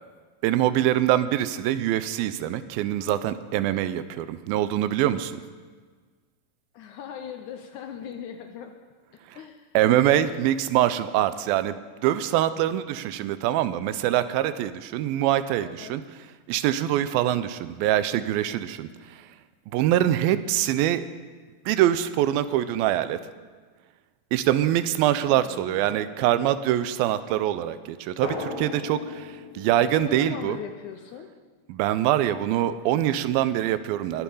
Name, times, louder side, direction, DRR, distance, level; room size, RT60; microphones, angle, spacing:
voice 1, 0.4-5.3 9.7-11.8 12.0-16.0 16.5-18.9 19.7-21.1 21.7-23.2 24.3-30.6 31.7-34.2, right 12 dB, 85° right, 13 dB, 2.4 m, -24 dB
voice 2, 6.7-8.7 9.1-9.7 10.0-10.4 15.6-16.0 25.3-26.0 29.8-31.3, left 8 dB, 75° left, 5 dB, 1.8 m, -39 dB
Drum, 28.2-30.9, left 4 dB, 50° left, 2.3 m, -37 dB
20.5 x 7.0 x 5.5 m, 1.5 s
omnidirectional pair, 4.1 m